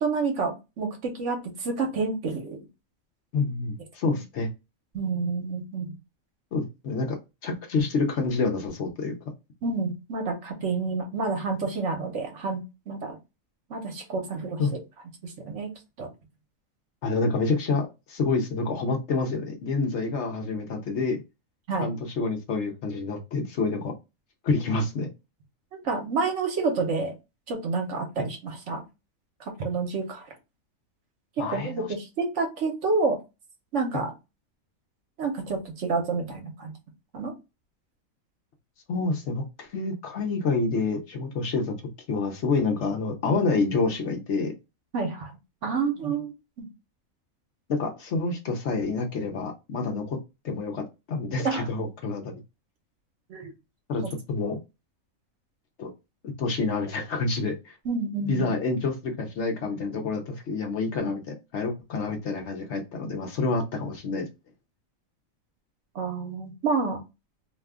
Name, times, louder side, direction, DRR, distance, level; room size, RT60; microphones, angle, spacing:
voice 1, 0.0-2.6 4.9-5.9 9.6-12.6 12.9-13.2 13.7-14.6 15.2-15.7 16.0-16.1 21.7-21.9 25.7-27.1 27.5-28.8 29.4-30.2 31.4-33.2 33.7-34.1 35.2-36.7 37.1-37.3 44.9-45.3 45.6-46.3 46.6-46.7 51.4-51.7 53.3-53.5 54.0-54.1 57.8-58.6 65.9-67.0, right 4 dB, 65° right, 3 dB, 1.1 m, -29 dB
voice 2, 3.3-4.5 6.5-7.2 7.4-9.2 14.6-14.7 17.0-21.2 21.8-23.9 24.4-25.1 31.4-31.9 38.9-41.8 42.1-44.5 47.7-50.2 50.4-52.4 53.9-54.6 55.8-55.9 56.2-57.8 58.3-64.3, left 3 dB, 60° left, 3 dB, 0.9 m, -28 dB
2.7 x 2.3 x 3.4 m, 0.25 s
omnidirectional pair, 1.4 m